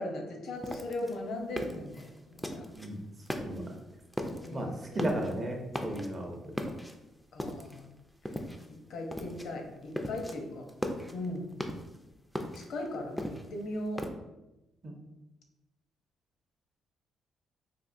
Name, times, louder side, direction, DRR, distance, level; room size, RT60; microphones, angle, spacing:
voice 1, 0.0-2.7 4.4-5.1 7.3-7.9 8.2-8.4 8.9-10.7 11.1-11.5 12.5-14.0, left 1 dB, 75° left, 2 dB, 0.7 m, -38 dB
sound 1, 0.6-2.9 3.2-3.8 4.1-4.5 4.8-5.4 5.7-6.2 6.6-7.8 8.2-8.8 9.1-9.5 9.8-10.3 10.7-12.0 12.3-14.1, equal, 5° left, 0.4 m, -37 dB
voice 2, 4.5-6.4 14.8-14.9, right 1 dB, 35° right, 2 dB, 0.6 m, -34 dB
3.6 x 2.5 x 2.5 m, 0.97 s
cardioid pair, 90°, 0 cm